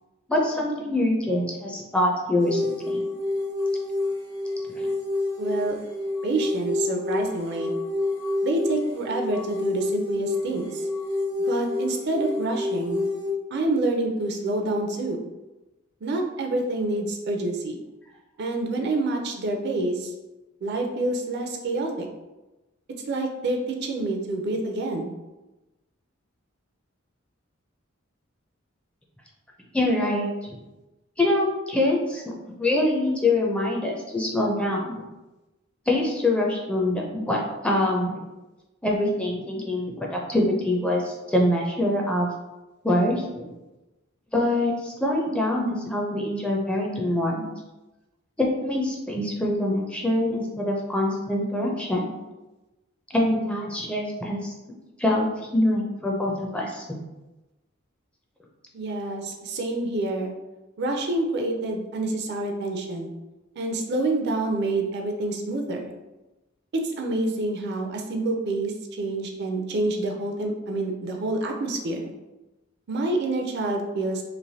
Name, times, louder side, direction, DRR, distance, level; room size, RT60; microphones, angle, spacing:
voice 1, 0.3-3.0 4.8-4.9 29.7-30.6 31.2-35.0 35.9-38.2 38.8-42.3 42.8-43.5 44.3-47.5 48.4-52.1 53.1-54.5 55.0-56.8, left 1 dB, 5° left, -1 dB, 0.4 m, -24 dB
sound 1, 2.4-13.3, left 2 dB, 80° left, 1.0 m, -28 dB
voice 2, 5.4-5.8 6.2-7.7 8.4-10.9 11.5-13.0 13.5-15.3 16.0-17.8 18.4-20.1 20.6-22.1 23.1-25.1 58.7-60.3 60.8-63.1 63.6-65.9 66.7-72.1 72.9-74.2, right 2 dB, 55° right, 3 dB, 0.4 m, -27 dB
3.1 x 2.5 x 2.7 m, 1.1 s
head